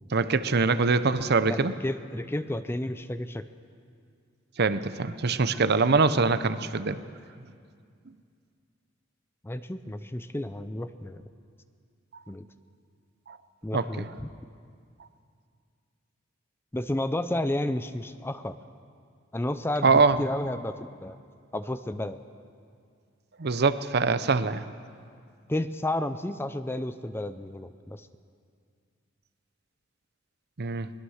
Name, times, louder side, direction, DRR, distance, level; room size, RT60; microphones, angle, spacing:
voice 1, 0.1-1.7 4.6-7.0 13.3-13.4 13.7-14.1 19.8-20.2 23.4-24.6 30.6-30.9, right 4 dB, 55° right, 13 dB, 0.7 m, -23 dB
voice 2, 1.5-3.4 9.4-11.3 12.3-12.4 13.6-14.3 16.7-18.6 19.3-21.2 21.5-22.2 25.5-28.1, left 1 dB, 10° left, 11 dB, 0.5 m, -32 dB
22.5 x 20.5 x 6.5 m, 2.2 s
head